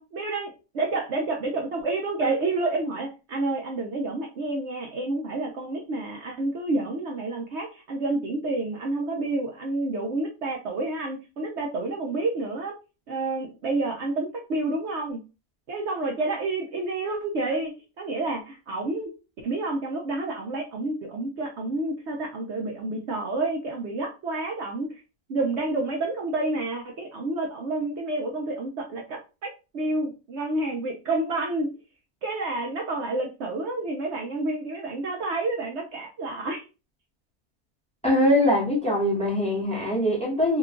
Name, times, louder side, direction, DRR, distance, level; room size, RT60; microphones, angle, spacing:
voice 1, 0.0-12.7 13.1-15.2 15.7-17.7 18.0-19.1 19.4-25.0 25.3-31.7 32.2-36.6, right 2 dB, 60° right, 0.9 m, -29 dB
voice 2, 38.0-40.6, left 1 dB, 5° left, 0.9 m, -22 dB
2.9 x 2.3 x 3.6 m
omnidirectional pair, 1.4 m